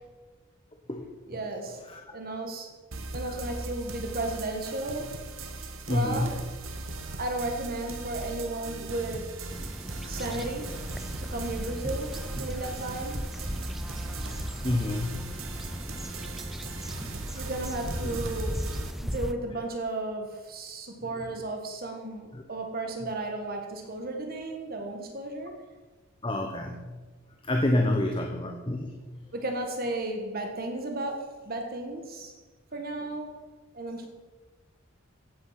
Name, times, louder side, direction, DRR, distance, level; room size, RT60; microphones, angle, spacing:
voice 1, 1.3-2.8 3.1-5.1 5.9-6.4 7.2-9.3 10.1-10.8 11.2-13.2 17.3-18.7 19.0-25.6 27.8-28.3 29.3-32.3 32.7-33.4 33.7-34.1, right 2 dB, 45° right, 3 dB, 1.6 m, -34 dB
sound 1, 2.9-18.9, right 2 dB, 70° right, 1.3 m, -39 dB
voice 2, 5.9-6.3 10.0-10.1 14.4-15.3 16.5-17.4 22.3-22.4 26.2-27.0 27.4-29.3, left 1 dB, 25° left, 3 dB, 1.1 m, -29 dB
sound 2, 9.5-19.3, equal, ahead, 0.4 m, -37 dB
15.5 x 8.6 x 5.9 m, 1.3 s
head